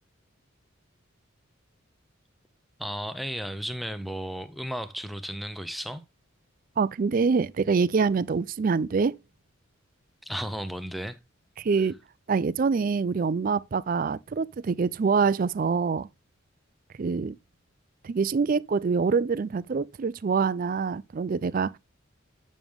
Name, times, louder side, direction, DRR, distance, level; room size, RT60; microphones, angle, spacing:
voice 1, 2.8-6.0 10.2-11.2, equal, ahead, 0.6 m, -34 dB
voice 2, 6.8-9.2 11.6-11.9 12.3-16.1 17.0-17.4 18.0-21.8, right 5 dB, 40° right, 0.4 m, -25 dB
8.9 x 6.2 x 3.5 m
head